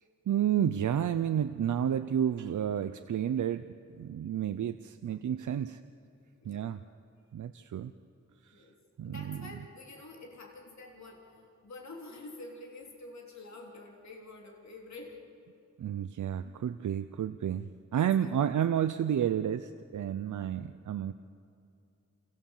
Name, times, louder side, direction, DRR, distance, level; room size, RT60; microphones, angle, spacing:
voice 1, 0.3-5.8 6.4-6.8 7.3-7.9 8.4-8.6 9.0-9.4 15.8-21.1, right 9 dB, 85° right, 10 dB, 0.6 m, -31 dB
voice 2, 8.5-15.2 17.9-18.1 18.5-18.7, left 2 dB, 70° left, 0 dB, 3.6 m, -48 dB
28.0 x 28.0 x 7.3 m, 2.6 s
wide cardioid pair, 175°, 29 cm